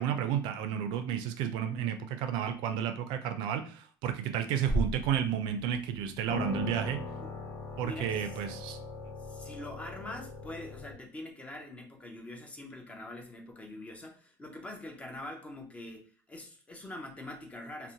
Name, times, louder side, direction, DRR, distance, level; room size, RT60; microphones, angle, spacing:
voice 1, 0.0-7.0 7.8-8.8, right 9 dB, 70° right, 8 dB, 0.4 m, -32 dB
sound 1, 4.7-5.2 5.7-5.8 6.3-10.9, left 1 dB, 45° left, 0.8 m, -37 dB
voice 2, 7.8-8.3 9.2-17.9, left 1 dB, 15° left, 2 dB, 0.5 m, -44 dB
2.5 x 2.1 x 2.8 m, 0.41 s
cardioid pair, 135°, 8 cm